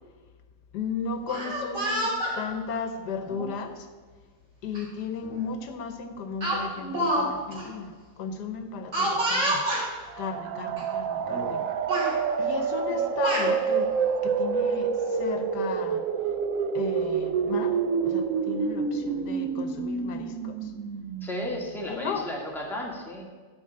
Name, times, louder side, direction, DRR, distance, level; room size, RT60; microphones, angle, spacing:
voice 1, 0.7-3.9 4.6-9.7 10.2-11.6 12.1-14.0 14.2-16.0 16.7-20.7 21.9-22.3, left 5 dB, 80° left, 8 dB, 1.4 m, -35 dB
Speech, 1.2-2.4 3.3-3.5 4.7-4.8 5.2-5.4 6.4-7.3 7.5-7.6 8.9-9.8 10.8-10.9 11.2-11.6 11.9-12.1 12.9-13.5, right 1 dB, 45° right, 3.0 m, -28 dB
sound 1, 10.1-21.7, right 6 dB, 60° right, 0.9 m, -28 dB
voice 2, 21.2-23.2, left 1 dB, ahead, -2 dB, 1.8 m, -34 dB
11.5 x 5.0 x 8.5 m, 1.4 s
omnidirectional pair, 1.8 m